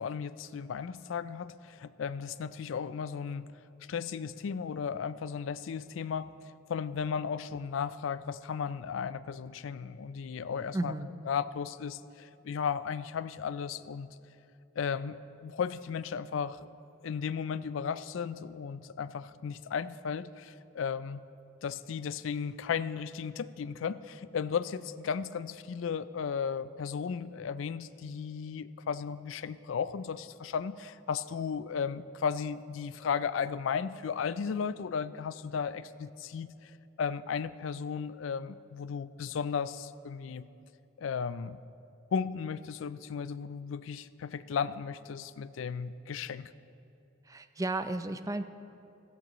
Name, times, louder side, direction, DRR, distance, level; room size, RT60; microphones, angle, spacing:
voice 1, 0.0-3.5 3.9-6.3 6.7-10.9 11.3-14.1 14.8-16.6 17.0-21.2 21.6-36.6 37.0-40.5 41.0-41.6 42.1-46.5, left 6 dB, 75° left, 15 dB, 0.4 m, -35 dB
voice 2, 10.7-11.1 47.3-48.4, right 2 dB, 15° right, 10 dB, 0.4 m, -33 dB
16.5 x 15.0 x 3.1 m, 2.6 s
head